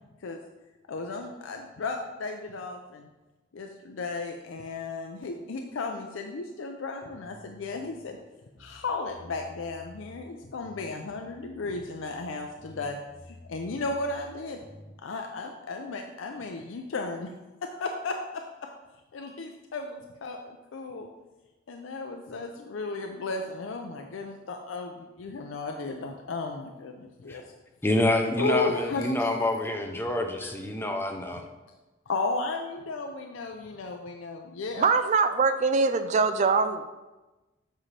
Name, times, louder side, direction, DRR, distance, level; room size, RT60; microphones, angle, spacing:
voice 1, 0.9-3.1 3.5-8.2 8.6-13.0 13.3-14.6 15.0-17.3 17.6-18.4 19.1-21.1 21.7-27.4 28.4-29.3 30.4-30.5 32.1-34.9, left 3 dB, 90° left, 0.5 m, -34 dB
sound 1, 7.1-8.1 8.5-10.3 10.6-12.3 12.6-15.0, left 1 dB, 30° left, 2.1 m, -51 dB
voice 2, 27.8-31.5, left 1 dB, 10° left, 0.6 m, -27 dB
voice 3, 34.8-36.9, right 4 dB, 35° right, 0.4 m, -23 dB
7.5 x 5.6 x 3.3 m
head